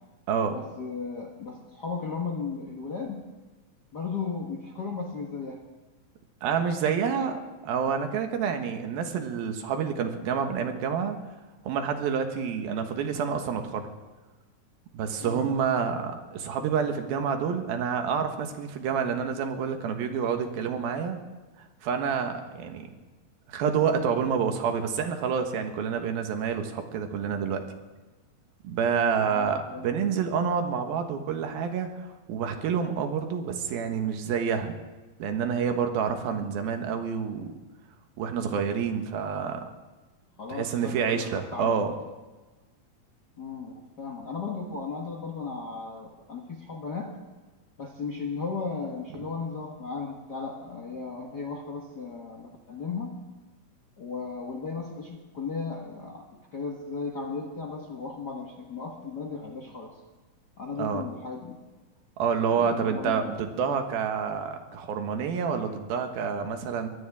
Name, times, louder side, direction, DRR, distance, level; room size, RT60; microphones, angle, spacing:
voice 1, 0.5-3.2 3.9-5.6 15.2-15.5 29.2-29.9 36.4-36.5 39.1-39.5 40.4-41.7 43.4-47.1 47.8-53.2 54.0-56.3 56.5-59.9 60.6-61.6 62.6-63.3, left 4 dB, 50° left, 1 dB, 1.2 m, -36 dB
voice 2, 6.4-11.2 11.6-13.9 14.9-21.2 21.8-22.9 23.5-27.6 28.6-34.7 35.2-37.6 38.2-39.6 40.5-41.9 60.8-61.1 62.2-66.9, right 6 dB, 80° right, 5 dB, 3.2 m, -28 dB
23.5 x 16.5 x 3.6 m, 1.2 s
omnidirectional pair, 4.2 m